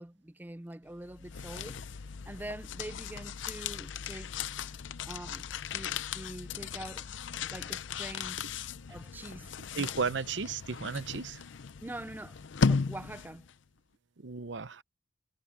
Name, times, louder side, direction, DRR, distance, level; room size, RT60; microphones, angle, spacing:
voice 1, 0.0-1.8 2.3-4.4 5.1-7.0 7.5-8.5 8.9-9.5 11.8-12.4 12.7-13.5, right 1 dB, 10° right, 0.4 m, -44 dB
sound 1, 1.0-13.5, left 5 dB, 70° left, 0.6 m, -36 dB
voice 2, 9.7-11.5 14.2-14.8, right 5 dB, 65° right, 0.8 m, -34 dB
head